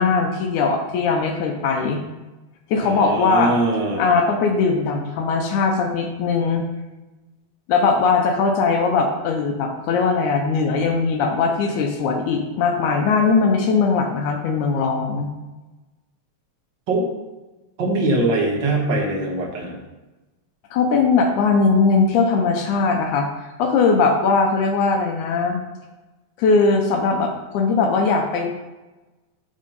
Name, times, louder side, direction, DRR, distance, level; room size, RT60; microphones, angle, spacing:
voice 1, 0.0-2.0 2.7-3.6 4.0-6.6 7.7-15.3 20.7-23.3 23.6-25.6 26.4-28.5, left 4 dB, 80° left, 3 dB, 2.2 m, -20 dB
voice 2, 2.8-4.0 16.9-17.1 17.8-19.8, right 2 dB, 50° right, -1 dB, 1.6 m, -22 dB
9.5 x 3.7 x 5.4 m, 1.1 s
omnidirectional pair, 3.4 m